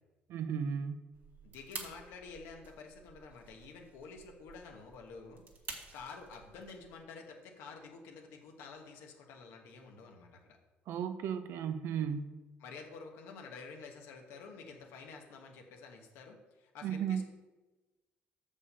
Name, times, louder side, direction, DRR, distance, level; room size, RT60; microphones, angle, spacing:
voice 1, 0.3-1.1 10.9-12.4 16.8-17.2, right 7 dB, 70° right, 9 dB, 0.7 m, -35 dB
sound 1, 1.1-6.9, right 4 dB, 45° right, 1.7 m, -50 dB
voice 2, 1.4-5.4 5.9-10.6 12.6-17.2, left 4 dB, 85° left, 2 dB, 1.3 m, -50 dB
6.7 x 5.4 x 5.5 m, 1.2 s
supercardioid pair, 80°, 4 cm